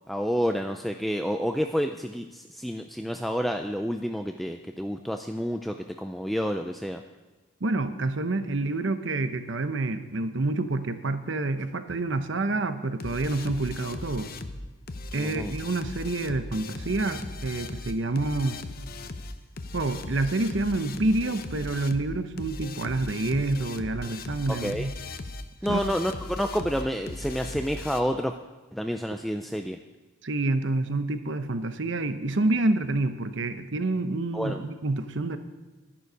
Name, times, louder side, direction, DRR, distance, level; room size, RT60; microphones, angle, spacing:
voice 1, 0.1-7.0 15.2-15.5 24.5-24.9 25.6-28.3 28.7-29.8 34.3-34.6, equal, ahead, 5 dB, 0.3 m, -29 dB
voice 2, 7.6-14.3 15.1-18.6 19.7-24.9 25.7-25.8 30.2-35.4, right 2 dB, 65° right, 10 dB, 0.8 m, -28 dB
sound 1, 13.0-28.0, left 2 dB, 45° left, 0.7 m, -38 dB
11.0 x 11.0 x 5.0 m, 1.3 s
head